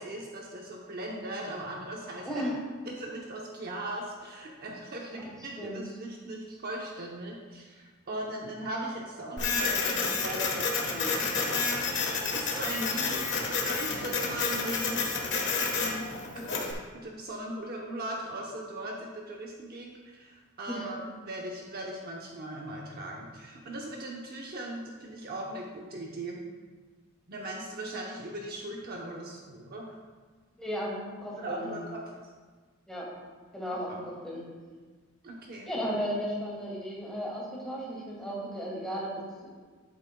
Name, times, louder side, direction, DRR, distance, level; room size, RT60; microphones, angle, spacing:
voice 1, 0.0-2.4 2.8-15.0 15.6-26.4 27.3-30.0 31.4-32.0 33.9-34.0 35.2-35.7, right 1 dB, 45° right, -2 dB, 0.9 m, -39 dB
voice 2, 2.2-2.6 5.1-5.2 5.5-5.8 20.7-20.9 30.6-31.8 32.9-33.1 33.5-34.4 35.6-39.5, equal, 5° left, -5 dB, 2.3 m, -35 dB
Printer, 9.4-16.7, left 4 dB, 60° left, 1.4 m, -30 dB
11.5 x 8.1 x 2.3 m, 1.5 s
head